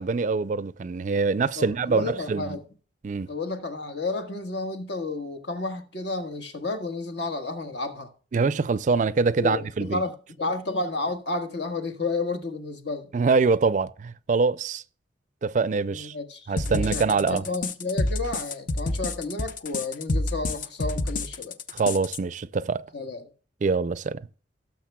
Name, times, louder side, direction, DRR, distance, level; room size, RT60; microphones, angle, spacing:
voice 1, 0.0-2.6 3.0-3.3 8.3-10.0 13.1-14.8 15.4-16.1 16.5-17.4 21.7-22.9 23.6-24.3, right 4 dB, 40° right, 0.4 m, -24 dB
voice 2, 1.6-2.6 3.3-8.1 9.4-13.1 15.9-21.6 22.9-23.2, left 3 dB, 70° left, 1.4 m, -31 dB
sound 1, 16.6-22.2, left 2 dB, 45° left, 0.7 m, -28 dB
18.0 x 6.6 x 2.2 m
head